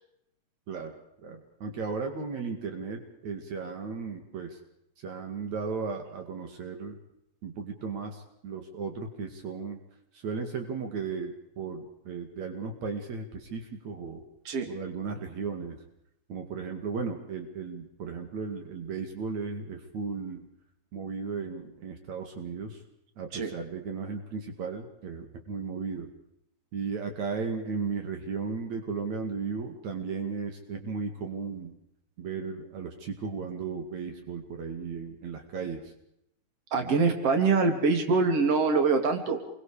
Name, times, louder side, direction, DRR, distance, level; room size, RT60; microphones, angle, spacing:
voice 1, 1.2-4.6 5.0-7.0 7.4-9.8 10.1-14.2 14.7-15.8 16.3-20.4 20.9-22.8 23.2-26.1 26.7-31.7 32.2-35.9 36.8-36.9, right 5 dB, 70° right, 4 dB, 3.6 m, -35 dB
voice 2, 36.7-39.4, right 4 dB, 55° right, 5 dB, 3.7 m, -24 dB
28.5 x 23.5 x 5.0 m, 0.77 s
omnidirectional pair, 3.3 m